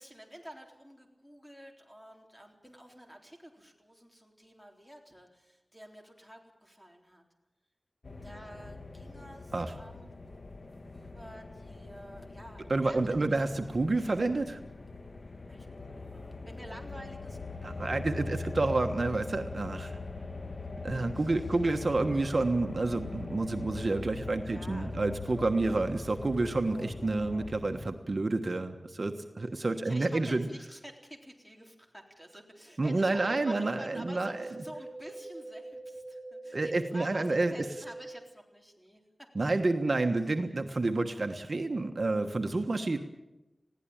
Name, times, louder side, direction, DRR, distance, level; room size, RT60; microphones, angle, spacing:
voice 1, 0.0-7.2 8.2-10.1 10.9-13.4 15.5-18.1 21.1-21.3 24.5-25.1 29.8-39.0 42.5-42.7, equal, ahead, 2 dB, 3.9 m, -49 dB
sound 1, 8.0-27.9, left 3 dB, 60° left, 1.5 m, -42 dB
voice 2, 12.7-14.6 17.6-19.9 20.8-30.5 32.8-34.5 36.5-37.6 39.3-43.0, right 2 dB, 60° right, 6 dB, 1.3 m, -29 dB
sound 2, 33.2-38.2, right 2 dB, 35° right, 2.0 m, -44 dB
20.5 x 16.5 x 8.8 m, 1.0 s
wide cardioid pair, 70°, 0 cm